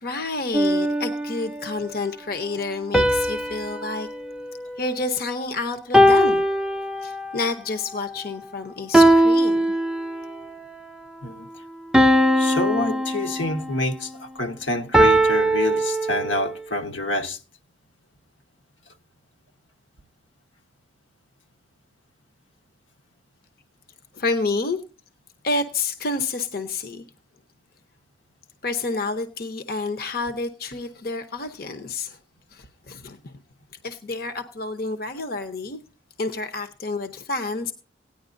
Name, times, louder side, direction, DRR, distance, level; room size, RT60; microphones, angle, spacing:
voice 1, 0.0-4.1 4.8-6.4 7.0-9.6 24.1-24.8 25.4-27.0 28.6-32.2 32.5-33.3 33.8-35.8 36.2-37.7, left 3 dB, 50° left, 0.7 m, -29 dB
sound 1, 0.5-1.8 2.9-5.4 5.9-7.4 8.9-10.4 11.9-13.8 14.9-16.6, right 1 dB, 5° right, 0.4 m, -20 dB
voice 2, 12.4-17.4, left 2 dB, 80° left, 1.2 m, -27 dB
17.0 x 10.0 x 2.6 m
head